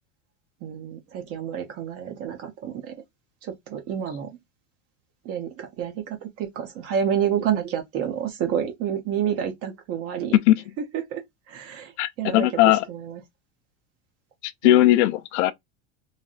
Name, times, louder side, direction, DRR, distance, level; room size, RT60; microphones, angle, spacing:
voice 1, 0.6-2.9 3.4-4.3 5.2-10.4 10.9-13.2 14.6-14.8, right 9 dB, 40° right, 0.7 m, -29 dB
voice 2, 12.0-12.8 14.4-15.5, left 15 dB, 80° left, 0.5 m, -19 dB
3.2 x 2.5 x 2.3 m
supercardioid pair, 140°, 35 cm